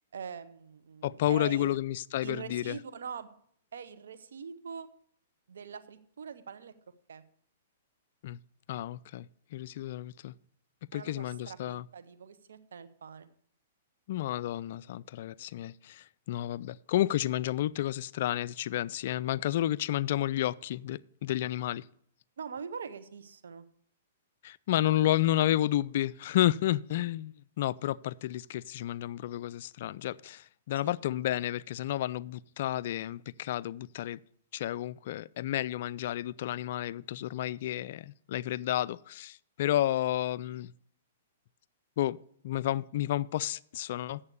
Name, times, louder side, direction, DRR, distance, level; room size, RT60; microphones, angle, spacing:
voice 1, 0.1-1.8 2.2-3.3 3.7-4.9 5.5-6.7 7.1-7.2 10.9-13.3 22.4-23.7 30.8-30.9, right 6 dB, 75° right, 0.9 m, -43 dB
voice 2, 1.0-2.8 8.2-8.4 8.7-9.3 9.5-10.3 10.9-11.8 14.1-21.8 24.4-34.2 34.5-40.7 42.0-42.2 42.4-44.2, left 13 dB, 55° left, 0.3 m, -31 dB
8.5 x 7.2 x 6.8 m
hypercardioid pair, 120°, 0 cm